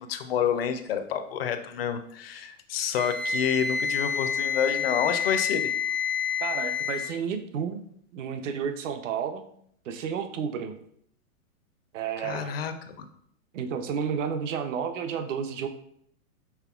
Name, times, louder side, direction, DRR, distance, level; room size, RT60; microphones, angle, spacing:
voice 1, 0.0-5.7 12.2-13.0, left 8 dB, 45° left, 8 dB, 0.4 m, -29 dB
Wind instrument woodwind instrument, 2.9-7.1, left 6 dB, 15° right, 0.4 m, -28 dB
voice 2, 6.4-7.8 8.1-9.4 9.9-10.7 11.9-12.5 13.5-15.7, right 7 dB, 60° right, 8 dB, 0.6 m, -31 dB
5.8 x 3.7 x 2.3 m, 0.67 s
hypercardioid pair, 160°, 43 cm